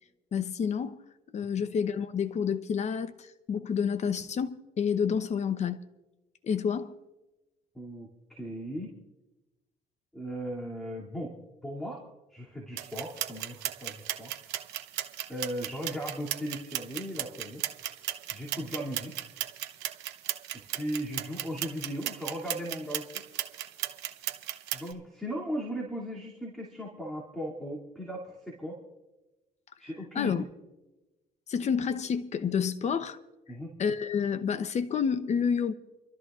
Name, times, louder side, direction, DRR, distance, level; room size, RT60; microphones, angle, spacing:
voice 1, 0.3-1.0 1.3-5.8 6.4-6.9 30.1-30.4 31.5-33.2 33.8-35.7, left 7 dB, 40° left, 0.9 m, -29 dB
voice 2, 7.7-8.9 10.1-11.3 11.6-12.0 12.3-14.3 15.3-17.6 18.3-19.1 20.5-23.1 24.7-28.8 29.8-30.5 33.5-33.7, equal, ahead, 2.6 m, -37 dB
sound 1, 12.8-24.9, right 13 dB, 90° right, 0.9 m, -36 dB
29.5 x 13.0 x 2.5 m
cardioid pair, 110°, 17 cm